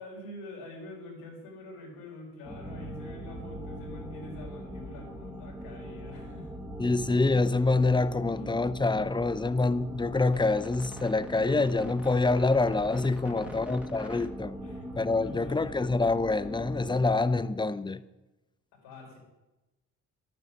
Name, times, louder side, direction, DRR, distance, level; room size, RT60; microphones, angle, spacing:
voice 1, 0.0-6.5 8.3-8.7 13.2-13.5 14.6-14.9 15.2-15.7 18.8-19.2, left 1 dB, 85° left, 4.3 m, -45 dB
sound 1, 2.4-17.2, equal, 5° right, 2.3 m, -41 dB
voice 2, 6.8-14.5 15.0-18.0, left 3 dB, 15° left, 0.7 m, -26 dB
11.0 x 9.3 x 6.5 m
hypercardioid pair, 55°, 36 cm